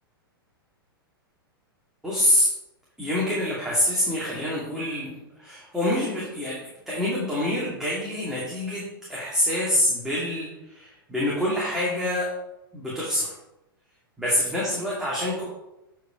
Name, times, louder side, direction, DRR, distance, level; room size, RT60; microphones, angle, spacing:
voice 1, 2.0-2.5 3.0-6.6 6.9-8.8 9.1-12.3 12.7-13.3 14.2-15.5, left 1 dB, 5° right, -7 dB, 2.3 m, -26 dB
8.2 x 4.7 x 5.1 m, 0.92 s
figure-of-eight pair, 100°, 12 cm